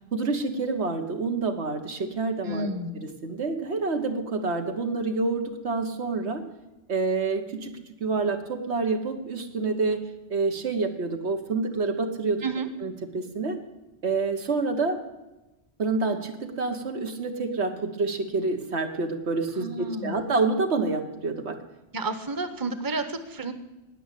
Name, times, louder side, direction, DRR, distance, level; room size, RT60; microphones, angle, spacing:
voice 1, 0.1-2.7 3.2-6.4 6.9-7.7 8.0-10.0 10.3-12.4 12.8-13.6 14.0-15.0 15.8-21.6, right 3 dB, 80° right, 5 dB, 1.7 m, -27 dB
voice 2, 2.4-3.0 12.4-12.7 19.6-20.2 21.9-23.5, right 2 dB, 20° right, 10 dB, 0.9 m, -31 dB
18.5 x 6.3 x 8.4 m, 1.0 s
omnidirectional pair, 1.1 m